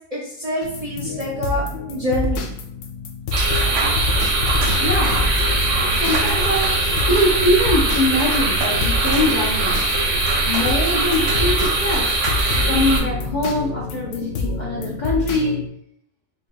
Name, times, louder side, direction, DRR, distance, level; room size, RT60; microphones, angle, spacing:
voice 1, 0.1-2.4, equal, 40° right, -5 dB, 0.6 m, -26 dB
sound 1, 0.6-15.7, left 3 dB, 70° left, 0.9 m, -28 dB
sound 2, 3.3-13.0, right 2 dB, 70° right, 1.1 m, -21 dB
voice 2, 4.8-5.2 5.9-6.8 7.1-9.8 10.4-15.6, left 1 dB, 45° left, -3 dB, 0.7 m, -23 dB
3.9 x 3.8 x 2.2 m, 0.71 s
omnidirectional pair, 1.4 m